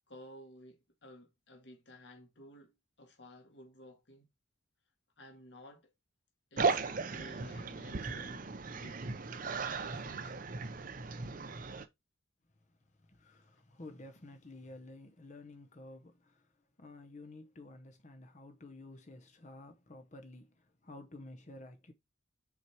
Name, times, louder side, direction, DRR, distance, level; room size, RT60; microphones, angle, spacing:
voice 1, 0.1-4.3 5.2-5.9 6.5-9.0 9.5-10.5, left 1 dB, 60° left, 1.8 m, -55 dB
sound 1, 6.6-11.8, right 4 dB, 40° right, 0.6 m, -36 dB
voice 2, 13.1-16.4 16.8-20.5 20.8-21.9, left 2 dB, 35° left, 0.8 m, -51 dB
5.8 x 4.5 x 4.7 m
head